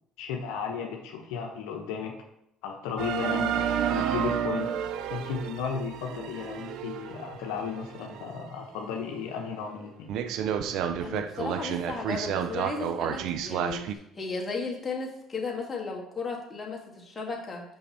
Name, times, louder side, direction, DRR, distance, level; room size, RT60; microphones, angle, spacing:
voice 1, 0.2-2.1 2.6-4.7 5.1-10.1, left 6 dB, 80° left, 1 dB, 0.9 m, -34 dB
sound 1, 3.0-8.4 8.9-9.0 9.5-9.6 10.1-13.9, right 9 dB, 70° right, 0.5 m, -31 dB
voice 2, 11.0-17.6, left 4 dB, 25° left, -1 dB, 2.0 m, -35 dB
5.7 x 5.4 x 4.4 m, 0.81 s
supercardioid pair, 75°, 0 cm